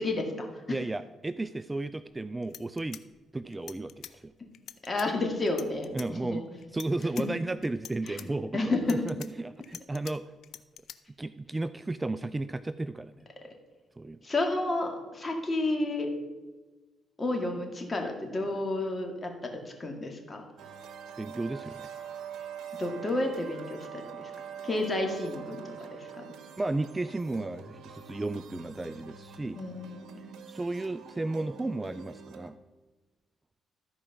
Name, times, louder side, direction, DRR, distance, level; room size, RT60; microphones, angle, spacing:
voice 1, 0.0-0.8 4.8-6.4 8.0-8.2 8.5-9.0 14.2-16.1 17.2-20.5 22.8-24.3 24.6-26.3 29.5-30.2, left 2 dB, 25° left, 3 dB, 2.0 m, -31 dB
voice 2, 0.7-3.0 3.3-4.3 5.9-6.4 6.7-10.2 11.2-13.1 14.0-14.2 21.2-21.9 26.6-29.6 30.5-32.6, right 2 dB, 15° right, 13 dB, 0.3 m, -33 dB
sound 1, 2.1-2.2 2.4-4.1 4.5-5.1 5.5-6.1 6.6-7.2 7.6-8.3 8.7-10.1 10.4-11.0, left 10 dB, 70° left, 0.5 m, -45 dB
sound 2, 20.6-32.5, right 7 dB, 75° right, 1.2 m, -45 dB
13.5 x 4.9 x 5.9 m, 1.3 s
cardioid pair, 90°, 0 cm